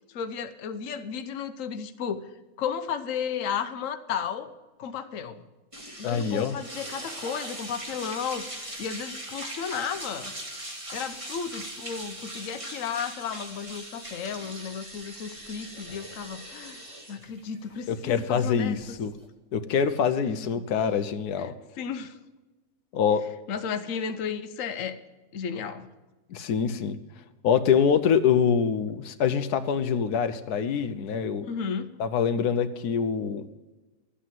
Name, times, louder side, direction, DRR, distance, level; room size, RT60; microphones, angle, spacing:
voice 1, 0.1-2.3 2.6-4.5 4.8-5.4 6.0-10.3 10.9-16.8 17.1-19.0 20.6-20.7 21.4-22.2 23.5-25.0 25.3-25.9 31.5-31.9, left 7 dB, 60° left, 9 dB, 1.2 m, -33 dB
sound 1, 5.7-19.3, right 1 dB, 20° right, 2.0 m, -40 dB
voice 2, 6.0-6.6 17.9-19.1 19.5-21.5 22.9-23.2 26.3-27.0 27.4-31.4 32.0-33.4, left 7 dB, 85° left, 10 dB, 1.3 m, -25 dB
13.0 x 8.5 x 7.5 m, 1.2 s
omnidirectional pair, 1.6 m